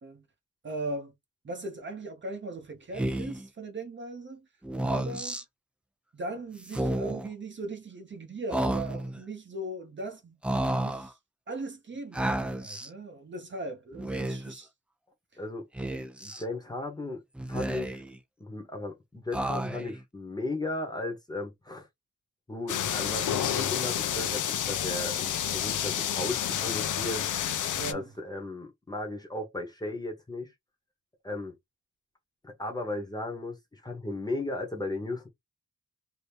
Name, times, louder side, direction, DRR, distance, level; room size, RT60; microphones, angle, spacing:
voice 1, 0.6-1.1 1.4-4.4 4.8-5.4 6.1-10.4 10.8-11.2 11.5-14.7 27.8-28.1, right 2 dB, 35° right, 0.8 m, -39 dB
Speech, 2.9-3.5 4.6-5.4 6.6-7.3 8.5-9.2 10.4-11.1 12.1-12.9 13.9-14.6 15.8-16.4 17.4-18.2 19.3-20.0, right 1 dB, 5° right, 0.3 m, -31 dB
voice 2, 16.2-17.2 17.5-18.0 18.4-21.9 22.5-27.3 27.9-30.5 31.2-31.6 32.4-35.3, left 2 dB, 15° left, 0.9 m, -36 dB
sound 1, 22.7-27.9, left 9 dB, 70° left, 0.6 m, -29 dB
2.8 x 2.6 x 3.3 m
wide cardioid pair, 165°, 31 cm